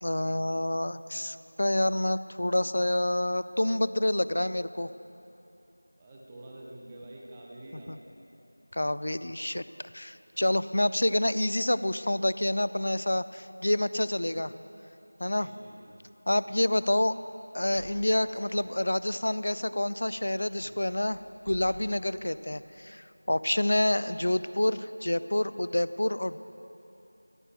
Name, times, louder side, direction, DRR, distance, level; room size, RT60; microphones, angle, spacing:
voice 1, 0.0-4.9 7.9-8.0 8.7-9.6 9.9-14.5 15.2-15.5 16.3-17.1 17.5-21.2 21.5-26.4, left 1 dB, 50° left, 14 dB, 0.4 m, -28 dB
voice 2, 6.0-8.0 15.4-15.9 16.5-16.6, right 1 dB, 10° right, -3 dB, 0.7 m, -47 dB
sound 1, 17.7-19.2 19.6-19.8 20.2-22.3, left 1 dB, 65° left, 1.1 m, -50 dB
14.0 x 7.7 x 8.0 m, 2.9 s
figure-of-eight pair, 180°, 0 cm